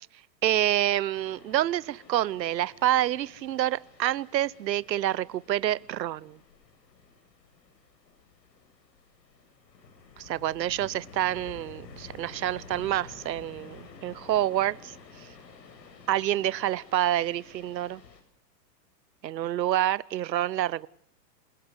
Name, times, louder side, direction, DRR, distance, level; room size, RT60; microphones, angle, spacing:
voice 1, 0.4-6.4 10.2-14.9 16.1-18.0 19.2-20.9, right 13 dB, 85° right, 0.9 m, -27 dB
sound 1, 1.1-18.2, left 4 dB, 80° left, 7.6 m, -51 dB
27.5 x 16.0 x 8.1 m
hypercardioid pair, 145°, 49 cm